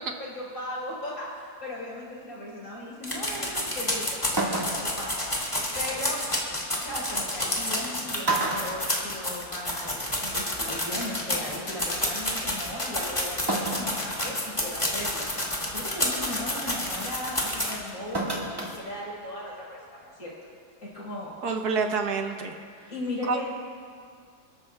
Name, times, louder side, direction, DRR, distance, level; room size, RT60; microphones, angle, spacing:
voice 1, 0.2-5.3 5.7-6.2 6.8-20.3 20.8-21.3 22.9-23.5, left 1 dB, 60° left, -6 dB, 4.9 m, -37 dB
sound 1, 3.0-17.9 18.3-18.4 18.7-18.8, left 1 dB, 20° left, 2.3 m, -29 dB
sound 2, 4.4-5.0 6.6-6.7 7.7-7.9 8.2-9.6 10.0-10.1 11.3-11.4 13.5-14.0 14.5-14.6 15.2-15.5 18.1-18.8 19.1-19.2, right 2 dB, 15° right, 1.7 m, -29 dB
voice 2, 21.4-22.5 23.2-23.4, right 4 dB, 75° right, 4 dB, 1.6 m, -27 dB
29.5 x 13.5 x 2.4 m, 2.2 s
omnidirectional pair, 1.7 m